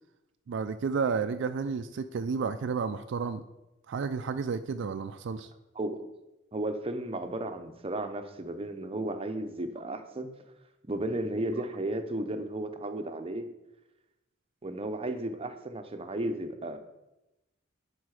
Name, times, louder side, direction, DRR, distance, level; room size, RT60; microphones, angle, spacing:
voice 1, 0.5-3.4 3.9-5.5, right 5 dB, 65° right, 10 dB, 0.4 m, -31 dB
voice 2, 6.5-10.3 10.9-13.5 14.6-16.8, right 1 dB, 30° right, 7 dB, 0.7 m, -34 dB
11.0 x 4.6 x 4.8 m, 0.96 s
head